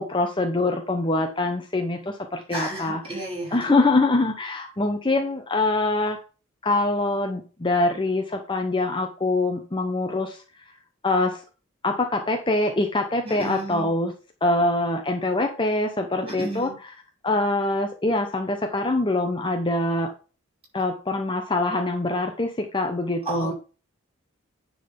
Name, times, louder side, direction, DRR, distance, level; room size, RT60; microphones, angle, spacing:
voice 1, 0.0-3.2 3.5-6.2 6.6-10.4 11.0-11.4 11.8-14.1 14.4-16.7 17.2-20.1 20.7-23.5, left 2 dB, 20° left, 4 dB, 0.8 m, -24 dB
voice 2, 2.5-3.7 13.2-13.9 16.2-16.8 23.2-23.5, right 1 dB, 25° right, -5 dB, 5.1 m, -32 dB
9.8 x 4.0 x 5.3 m, 0.34 s
head